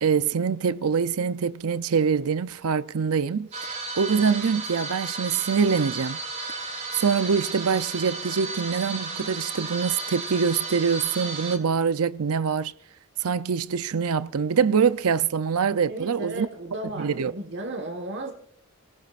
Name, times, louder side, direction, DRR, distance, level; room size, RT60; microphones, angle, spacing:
voice 1, 0.0-3.5 4.0-6.2 6.9-12.7 13.2-16.5 17.0-17.3, right 6 dB, 80° right, 0.6 m, -24 dB
sound 1, 3.5-11.6, right 4 dB, 30° right, 2.3 m, -34 dB
voice 2, 15.9-18.3, right 1 dB, 50° right, 1.4 m, -34 dB
29.5 x 17.0 x 2.5 m
head